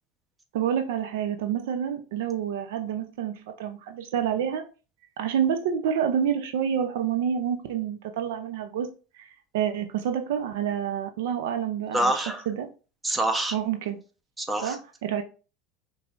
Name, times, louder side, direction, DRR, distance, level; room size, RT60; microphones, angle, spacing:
voice 1, 0.5-4.6 5.2-8.9 9.2-9.3 9.5-12.7 13.5-14.0 14.6-15.2, right 8 dB, 75° right, 7 dB, 0.6 m, -28 dB
voice 2, 11.9-12.4 13.0-13.6 14.4-14.8, right 1 dB, 15° right, 6 dB, 1.0 m, -26 dB
5.8 x 3.3 x 2.5 m, 0.35 s
hypercardioid pair, 85°, 0 cm